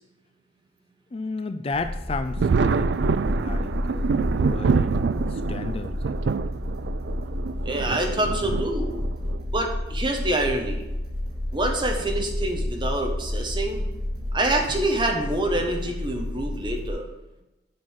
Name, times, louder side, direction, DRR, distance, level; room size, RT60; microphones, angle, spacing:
voice 1, 1.1-3.0 3.3-6.3 8.4-8.5, left 3 dB, 35° left, 9 dB, 0.4 m, -33 dB
sound 1, 1.7-16.9, left 1 dB, 60° right, 2.5 m, -30 dB
Thunder, 2.4-9.4 10.4-10.5 12.0-12.2 12.6-12.7 14.7-14.9 15.6-15.9, right 5 dB, 80° right, 0.4 m, -26 dB
voice 2, 7.6-9.0 9.5-10.8 11.5-13.8 14.3-17.1, right 1 dB, 25° right, 2 dB, 1.3 m, -26 dB
7.7 x 5.5 x 7.1 m, 1.0 s
head